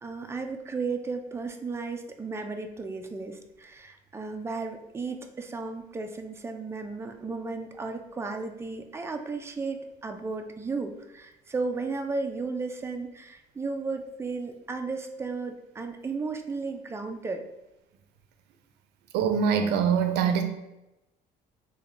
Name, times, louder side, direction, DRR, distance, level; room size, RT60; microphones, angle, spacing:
voice 1, 0.0-17.4, right 4 dB, 15° right, 5 dB, 0.4 m, -34 dB
voice 2, 19.1-20.4, right 7 dB, 80° right, 7 dB, 0.5 m, -23 dB
3.1 x 2.2 x 3.7 m, 0.95 s
cardioid pair, 110°, 17 cm